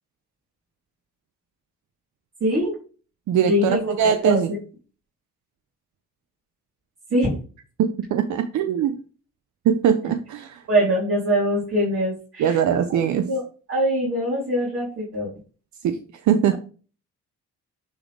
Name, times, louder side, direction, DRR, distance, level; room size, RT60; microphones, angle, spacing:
voice 1, 2.4-2.7 3.4-4.6 7.1-7.4 10.7-12.6 13.2-13.4 13.7-15.3, equal, 50° right, -6 dB, 3.3 m, -23 dB
voice 2, 3.3-4.5 7.8-9.0 9.6-10.6 12.4-13.3 15.8-16.0 16.2-16.5, right 8 dB, 70° right, 9 dB, 0.7 m, -21 dB
9.7 x 4.0 x 3.4 m, 0.37 s
cardioid pair, 90°, 30 cm